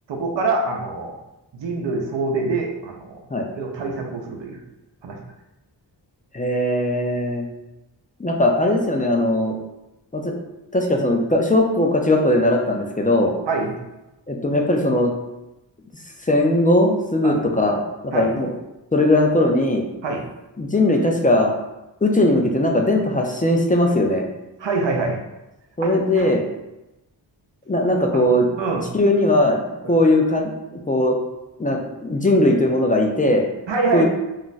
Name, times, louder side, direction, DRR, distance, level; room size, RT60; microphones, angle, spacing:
voice 1, 0.1-1.1 1.5-3.2 3.5-4.6 5.0-5.2 13.5-13.7 17.2-17.4 18.1-18.3 20.0-20.2 24.6-25.2 25.8-25.9 26.2-26.3 28.1-28.3 28.6-28.9 29.8-29.9 33.7-34.0, right 3 dB, 85° right, 1 dB, 0.6 m, -25 dB
voice 2, 6.3-7.5 8.2-9.6 10.1-10.3 10.7-13.3 14.3-15.1 16.3-18.5 18.9-19.8 20.6-21.5 22.0-24.2 25.8-26.4 27.7-28.5 28.9-29.6 29.9-31.2 31.6-33.5 33.9-34.0, left 1 dB, 20° left, 1 dB, 0.4 m, -19 dB
2.4 x 2.2 x 3.9 m, 0.95 s
wide cardioid pair, 80°, 43 cm